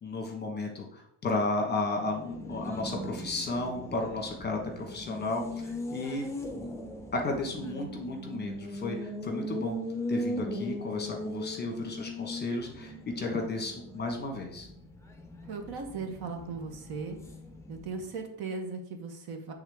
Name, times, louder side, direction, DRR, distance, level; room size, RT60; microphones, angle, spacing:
voice 1, 0.0-6.3 7.1-9.8 10.1-14.7, left 2 dB, 25° left, 2 dB, 1.0 m, -33 dB
Race car auto racing, 2.0-18.2, equal, 5° left, 0.5 m, -39 dB
voice 2, 15.5-17.2 17.7-19.5, right 4 dB, 60° right, 5 dB, 1.1 m, -37 dB
7.9 x 3.6 x 3.5 m, 0.71 s
cardioid pair, 155°, 42 cm